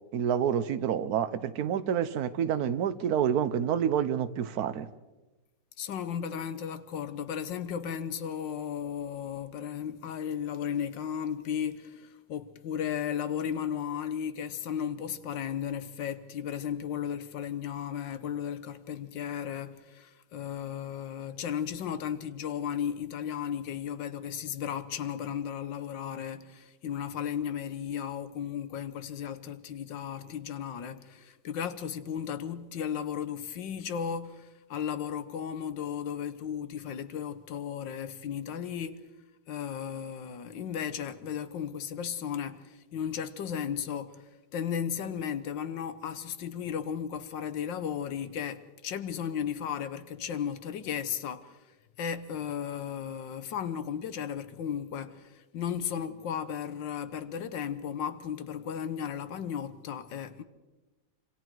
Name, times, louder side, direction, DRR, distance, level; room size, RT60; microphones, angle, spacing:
voice 1, 0.1-4.9, right 8 dB, 60° right, 1.3 m, -28 dB
voice 2, 5.8-39.0 39.5-44.2 44.5-51.6 52.0-60.4, left 8 dB, 80° left, 1.7 m, -35 dB
26.5 x 26.0 x 4.7 m
omnidirectional pair, 2.0 m